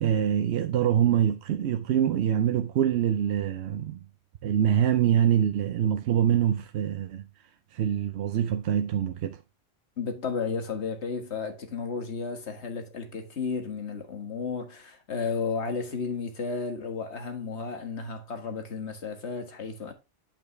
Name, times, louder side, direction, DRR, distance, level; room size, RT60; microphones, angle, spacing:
voice 1, 0.0-4.0 4.4-7.2 7.7-9.4, right 9 dB, 75° right, 0.8 m, -25 dB
voice 2, 10.0-19.9, left 5 dB, 70° left, 1.8 m, -33 dB
8.8 x 5.3 x 3.1 m
omnidirectional pair, 1.2 m